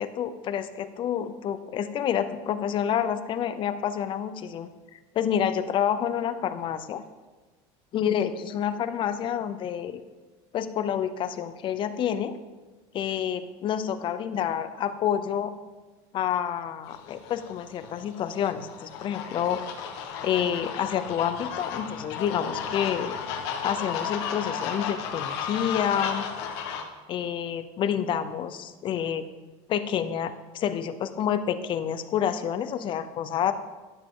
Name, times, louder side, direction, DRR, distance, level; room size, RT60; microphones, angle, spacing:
voice 1, 0.0-7.0 7.9-10.0 10.5-12.4 12.9-15.5 16.1-19.6 20.2-23.2 23.6-26.2 27.1-29.3 29.7-33.5, left 9 dB, 40° left, 11 dB, 0.7 m, -28 dB
sound 1, 16.9-26.8, left 7 dB, 85° left, 1.4 m, -34 dB
12.0 x 7.5 x 3.8 m, 1.3 s
cardioid pair, 135°, 13 cm